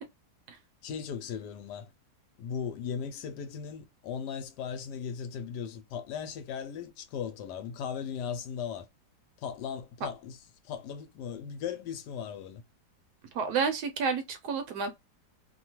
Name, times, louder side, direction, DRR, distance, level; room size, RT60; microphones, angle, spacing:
voice 1, 0.8-1.9 2.4-8.9 9.4-10.4 10.6-12.6, left 7 dB, 80° left, 1.1 m, -37 dB
voice 2, 13.3-15.0, right 5 dB, 75° right, 1.1 m, -30 dB
2.8 x 2.2 x 2.9 m
omnidirectional pair, 1.8 m